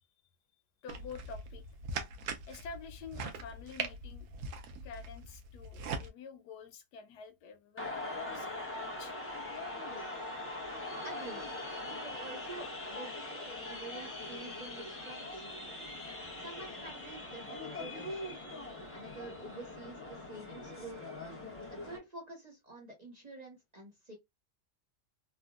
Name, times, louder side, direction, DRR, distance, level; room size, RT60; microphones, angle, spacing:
voice 1, 0.8-1.6 2.5-4.3 4.8-9.4 10.0-10.4, left 5 dB, 85° left, 1.3 m, -49 dB
sound 1, 0.9-6.1, right 4 dB, 75° right, 1.1 m, -41 dB
sound 2, 7.8-22.0, left 2 dB, 10° left, 0.6 m, -42 dB
voice 2, 11.0-11.4 11.8-15.5 16.4-18.4 18.9-21.0 21.7-24.1, right 2 dB, 30° right, 0.9 m, -48 dB
3.5 x 2.1 x 2.3 m
omnidirectional pair, 1.7 m